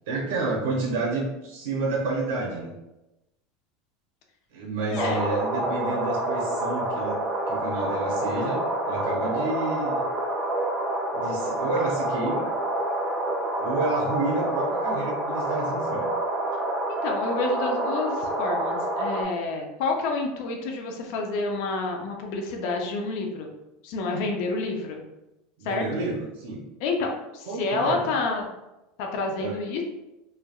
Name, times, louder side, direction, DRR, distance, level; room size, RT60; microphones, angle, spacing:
voice 1, 0.1-2.7 4.5-7.2 7.5-10.0 11.1-12.5 13.6-16.1 25.6-26.6 27.4-28.1 29.4-29.6, right 3 dB, 85° right, -2 dB, 0.7 m, -30 dB
sound 1, 5.0-19.2, right 1 dB, 20° right, 0.4 m, -27 dB
voice 2, 16.9-23.5 23.8-25.0 25.6-25.8 26.8-28.5 29.0-29.8, left 3 dB, 55° left, 2 dB, 0.4 m, -29 dB
3.3 x 2.2 x 2.2 m, 0.96 s
supercardioid pair, 175°, 0 cm